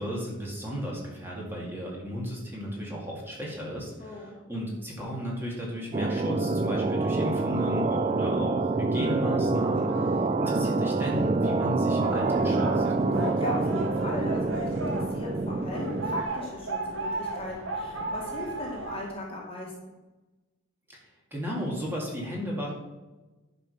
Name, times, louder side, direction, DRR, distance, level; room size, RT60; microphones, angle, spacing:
voice 1, 0.0-9.9 10.4-12.8 20.9-21.0 21.3-22.7, equal, 10° right, -4 dB, 2.2 m, -34 dB
voice 2, 4.0-4.4 9.8-10.2 13.2-19.7, left 1 dB, 25° left, -2 dB, 1.8 m, -38 dB
Glissando Tremolo Vibes, 5.9-16.2, right 3 dB, 30° right, 0.4 m, -26 dB
sound 1, 12.0-19.0, right 2 dB, 75° right, 1.3 m, -34 dB
10.5 x 5.0 x 5.7 m, 1.1 s
head